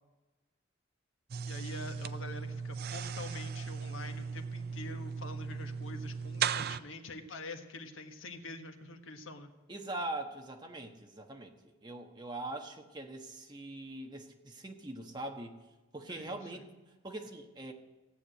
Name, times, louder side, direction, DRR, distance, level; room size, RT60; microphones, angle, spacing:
sound 1, 1.3-6.8, right 6 dB, 50° right, 0.4 m, -37 dB
voice 1, 1.5-9.5 16.1-16.6, left 2 dB, 80° left, 6 dB, 1.4 m, -46 dB
voice 2, 9.7-15.6 15.9-16.7 17.0-17.7, right 2 dB, 20° right, 3 dB, 1.3 m, -42 dB
16.0 x 8.3 x 8.0 m, 1.2 s
head